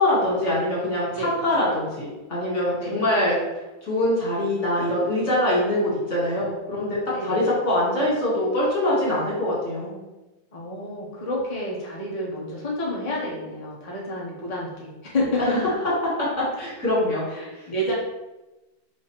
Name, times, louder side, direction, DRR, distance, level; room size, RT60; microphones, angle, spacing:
voice 1, 0.0-3.4 3.8-7.0 7.2-10.0 16.4-17.3, left 1 dB, 40° left, -6 dB, 1.8 m, -23 dB
voice 2, 7.1-7.5 10.5-15.7 17.3-17.9, left 1 dB, 55° left, -4 dB, 0.4 m, -29 dB
4.9 x 3.4 x 3.0 m, 1.0 s
omnidirectional pair, 2.2 m